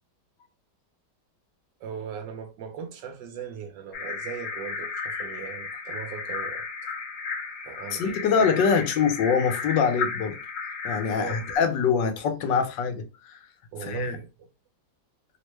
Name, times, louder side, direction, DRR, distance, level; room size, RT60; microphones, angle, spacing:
voice 1, 1.8-6.7 7.6-8.5 11.1-11.6 13.7-14.5, right 7 dB, 75° right, 1.3 m, -38 dB
sound 1, 3.9-11.5, left 5 dB, 60° left, 0.9 m, -34 dB
voice 2, 7.9-10.4 10.8-13.4 13.8-14.1, left 6 dB, 80° left, 1.3 m, -24 dB
3.5 x 2.1 x 3.0 m
omnidirectional pair, 2.0 m